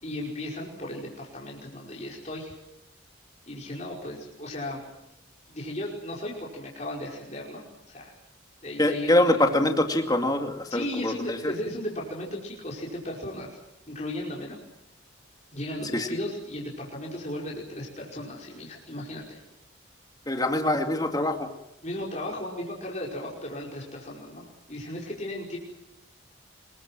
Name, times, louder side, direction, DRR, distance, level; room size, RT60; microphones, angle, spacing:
voice 1, 0.0-2.5 3.5-4.8 5.5-8.1 8.6-9.1 10.7-13.6 13.9-14.6 15.5-19.4 21.8-25.6, left 1 dB, 35° left, -2 dB, 5.3 m, -35 dB
voice 2, 8.8-11.5 15.9-16.1 20.3-21.5, left 1 dB, 20° left, 5 dB, 2.3 m, -24 dB
26.5 x 22.0 x 7.6 m, 0.86 s
head